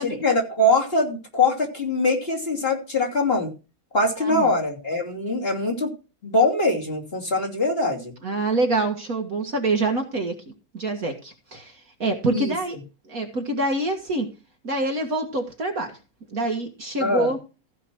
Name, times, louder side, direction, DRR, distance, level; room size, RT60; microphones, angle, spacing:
voice 1, 0.0-3.5 3.9-5.9 6.2-8.1 12.3-12.5 17.0-17.3, left 2 dB, 30° left, 0 dB, 3.0 m, -23 dB
voice 2, 4.2-4.5 8.2-10.3 10.7-11.7 12.0-12.8 13.1-14.3 14.6-15.9 16.3-17.4, right 2 dB, 45° right, 3 dB, 2.0 m, -25 dB
15.5 x 5.3 x 6.0 m, 0.31 s
omnidirectional pair, 2.2 m